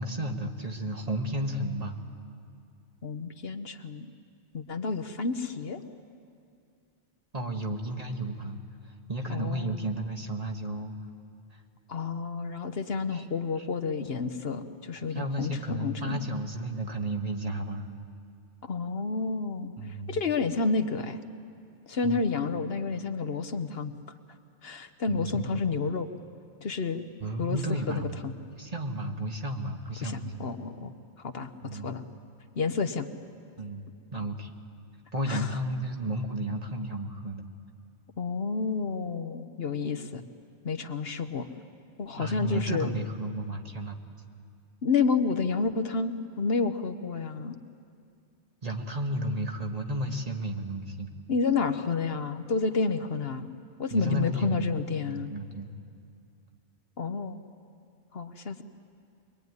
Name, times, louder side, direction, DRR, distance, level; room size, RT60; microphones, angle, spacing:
voice 1, 0.0-2.0 7.3-10.9 11.5-11.6 13.1-13.3 13.6-13.7 15.1-17.9 19.8-20.2 22.0-22.2 25.1-25.5 27.2-30.5 31.6-32.0 33.6-33.8 34.1-34.5 35.1-37.5 42.2-44.0 48.6-51.1 53.9-54.7 55.0-55.7, right 1 dB, 35° right, 3 dB, 1.6 m, -33 dB
voice 2, 3.0-4.1 4.5-5.8 9.3-9.8 11.9-16.2 18.6-19.7 20.1-21.2 21.9-23.9 24.6-26.1 26.6-27.1 27.4-28.3 30.0-30.9 31.2-32.0 32.6-33.1 35.3-35.5 38.2-40.2 40.6-41.5 42.0-42.9 44.8-47.6 51.3-53.5 53.8-55.3 57.0-57.4 58.1-58.6, left 4 dB, 60° left, 9 dB, 1.1 m, -30 dB
23.5 x 22.5 x 9.6 m, 2.4 s
omnidirectional pair, 1.2 m